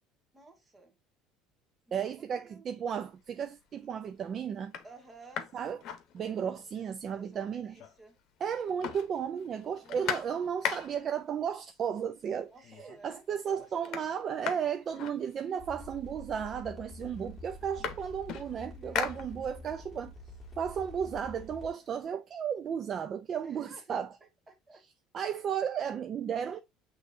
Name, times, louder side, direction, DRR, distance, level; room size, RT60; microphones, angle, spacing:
voice 1, 0.3-0.9 1.9-2.7 4.8-5.5 6.1-6.8 7.1-8.2 9.8-10.4 12.5-14.0 18.6-19.1 23.4-24.0 24.5-24.8, right 2 dB, 20° right, 1.4 m, -55 dB
voice 2, 1.9-4.7 5.5-5.8 6.1-7.7 8.4-20.1 20.6-24.1 25.1-26.6, right 8 dB, 45° right, 0.4 m, -34 dB
sound 1, 3.2-3.7 4.2-4.3 4.6-6.7 7.0-7.1 7.3-8.2 8.5-11.2 12.1-12.2 12.6-13.1 13.4-15.8 16.6-16.7 17.0-19.8 20.2-21.9, left 9 dB, 60° left, 0.8 m, -40 dB
sound 2, 15.6-21.7, left 2 dB, 5° left, 1.7 m, -47 dB
6.4 x 3.1 x 2.5 m
supercardioid pair, 95°, 0 cm